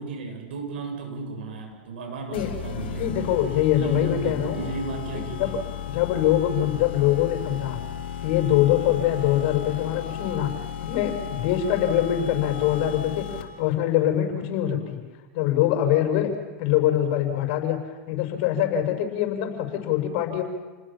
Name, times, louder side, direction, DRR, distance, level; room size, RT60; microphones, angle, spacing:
voice 1, 0.0-3.4 3.8-5.6, right 4 dB, 80° right, 4 dB, 7.9 m, -34 dB
sound 1, 2.3-13.7, left 9 dB, 80° left, 4.0 m, -35 dB
voice 2, 2.8-4.6 5.1-5.6 5.9-7.8 8.2-10.5 10.8-15.0 15.3-16.3 16.6-17.8 18.1-20.4, left 11 dB, 60° left, 5 dB, 6.4 m, -23 dB
30.0 x 20.5 x 7.5 m, 1.3 s
hypercardioid pair, 110°, 5 cm